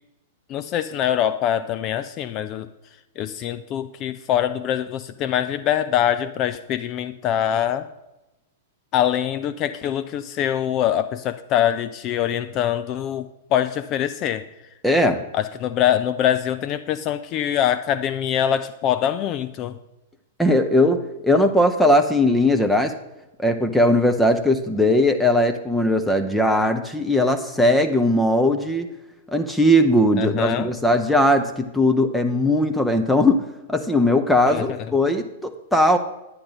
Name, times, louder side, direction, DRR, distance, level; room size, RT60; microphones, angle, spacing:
voice 1, 0.5-2.7 3.2-7.9 8.9-14.5 15.3-19.8 30.2-30.7 34.5-34.6, left 10 dB, 35° left, 11 dB, 0.4 m, -23 dB
voice 2, 14.8-15.2 20.4-22.9 23.4-28.9 29.3-36.0, left 1 dB, ahead, 5 dB, 0.7 m, -19 dB
10.0 x 9.8 x 4.1 m, 0.99 s
figure-of-eight pair, 100°, 0 cm